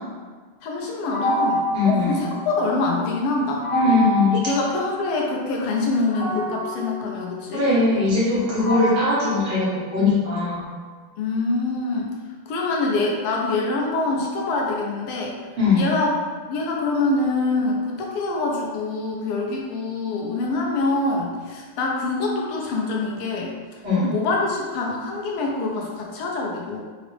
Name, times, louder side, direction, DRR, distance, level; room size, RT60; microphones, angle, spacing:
voice 1, 0.6-3.7 4.4-7.7 11.2-12.1 12.5-15.3 15.7-16.1 16.5-26.8, left 3 dB, 85° left, -2 dB, 1.5 m, -25 dB
sound 1, 1.1-2.9 3.6-5.4 6.1-10.4, equal, 65° left, 1.3 m, -28 dB
voice 2, 1.7-2.2 3.7-4.3 7.5-10.7 15.6-15.9 23.8-24.1, left 3 dB, 70° right, -9 dB, 2.1 m, -20 dB
4.9 x 2.0 x 3.0 m, 1.5 s
omnidirectional pair, 2.4 m